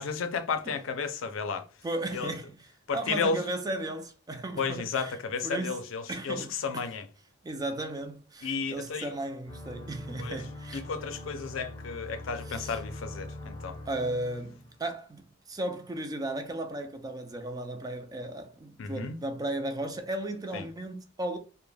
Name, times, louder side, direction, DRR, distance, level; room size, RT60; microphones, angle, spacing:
voice 1, 0.0-1.7 2.1-2.3 2.9-3.4 4.6-7.1 8.4-9.1 10.2-10.4 10.7-13.7 18.8-19.2 20.5-20.6, left 5 dB, 85° left, 0.4 m, -33 dB
voice 2, 1.8-2.7 2.9-5.2 5.4-5.8 6.1-6.9 7.4-10.8 12.5-12.8 13.9-21.4, right 1 dB, 20° right, 0.4 m, -35 dB
sound 1, 9.5-14.8, left 1 dB, 25° left, 0.6 m, -43 dB
2.2 x 2.1 x 3.2 m
head